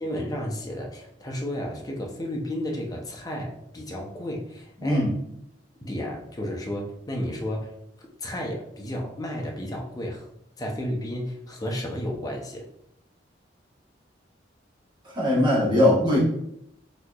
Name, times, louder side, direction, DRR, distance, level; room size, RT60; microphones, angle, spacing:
voice 1, 0.0-5.1 5.8-7.7 8.2-10.3 10.6-12.7 15.7-15.8, equal, 20° left, 0 dB, 0.6 m, -32 dB
voice 2, 15.1-16.2, left 1 dB, 25° right, -7 dB, 1.1 m, -20 dB
4.2 x 2.8 x 2.3 m, 0.77 s
head